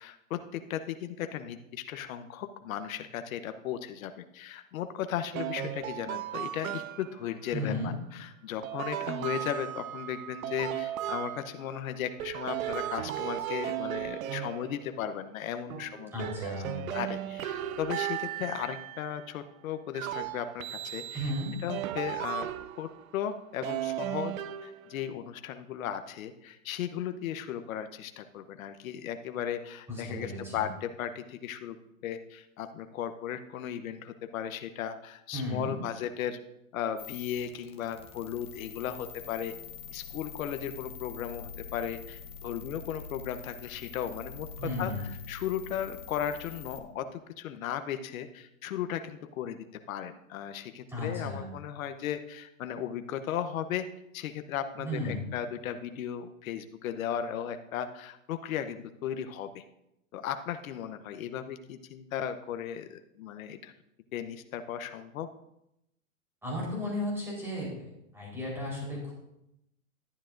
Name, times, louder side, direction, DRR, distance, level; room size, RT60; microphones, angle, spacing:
voice 1, 0.0-16.6 16.9-21.3 21.6-22.5 22.8-24.3 24.6-31.8 32.0-36.4 36.7-39.5 39.9-53.8 54.1-59.6 60.1-63.7 64.1-65.3, left 9 dB, 75° left, 9 dB, 0.9 m, -36 dB
sound 1, 5.3-7.3 8.6-11.8 12.2-15.3 15.7-19.2 19.9-23.1 23.6-25.1, right 12 dB, 80° right, 0.6 m, -36 dB
voice 2, 7.5-7.9 16.1-16.8 21.1-21.5 29.9-30.7 35.3-35.8 44.6-45.0 50.9-51.5 54.8-55.2 66.4-69.1, left 1 dB, 5° right, -4 dB, 4.1 m, -34 dB
sound 2, 37.0-46.8, left 6 dB, 15° left, 1.1 m, -45 dB
12.0 x 10.0 x 2.6 m, 0.83 s
supercardioid pair, 145°, 41 cm